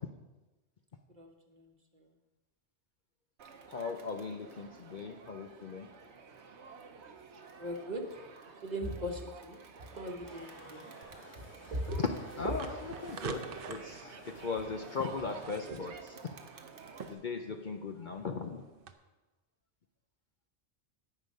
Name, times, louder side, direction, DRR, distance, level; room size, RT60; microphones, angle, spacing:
Crowd, 3.4-17.1, right 5 dB, 70° right, 1.1 m, -51 dB
voice 1, 3.7-5.9 12.0-12.1 12.4-16.3 17.0-18.6, left 5 dB, 50° left, 5 dB, 0.7 m, -38 dB
voice 2, 7.6-8.0 8.6-9.6 9.9-10.8 11.7-12.0 13.5-13.7 15.7-15.8, equal, 40° right, 2 dB, 1.2 m, -38 dB
sound 1, 10.2-15.4, left 1 dB, 30° left, 2.3 m, -53 dB
sound 2, 11.0-18.9, right 6 dB, 55° right, 0.8 m, -49 dB
9.7 x 8.4 x 5.4 m, 1.1 s
omnidirectional pair, 1.2 m